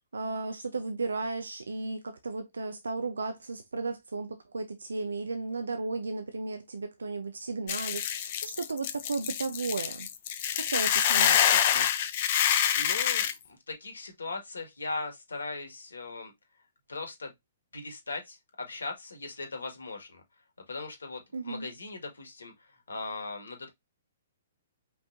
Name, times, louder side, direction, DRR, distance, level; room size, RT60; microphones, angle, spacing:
voice 1, 0.1-10.1 10.5-11.9 21.3-21.7, right 3 dB, 80° right, 0.7 m, -35 dB
Hiss / Boiling, 7.7-13.3, left 9 dB, 45° left, 0.7 m, -26 dB
voice 2, 12.7-16.3 16.9-17.3 17.7-20.2 20.7-23.7, left 3 dB, 75° left, 1.9 m, -39 dB
5.3 x 3.5 x 2.7 m
figure-of-eight pair, 120°, 0 cm